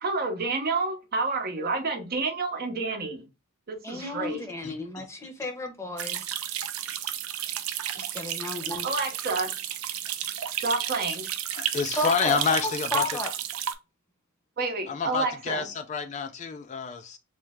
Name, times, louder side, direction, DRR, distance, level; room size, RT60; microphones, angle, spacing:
voice 1, 0.0-3.3 3.7-4.4 8.8-9.5 10.6-11.3 14.6-15.7, right 3 dB, 45° right, 0.8 m, -29 dB
voice 2, 3.8-6.4 7.9-8.9 11.9-13.3, left 1 dB, 15° left, 0.8 m, -33 dB
sound 1, 6.0-13.7, right 11 dB, 90° right, 0.5 m, -32 dB
voice 3, 11.5-13.1 14.9-17.2, left 6 dB, 35° left, 0.3 m, -28 dB
3.2 x 3.2 x 3.4 m
head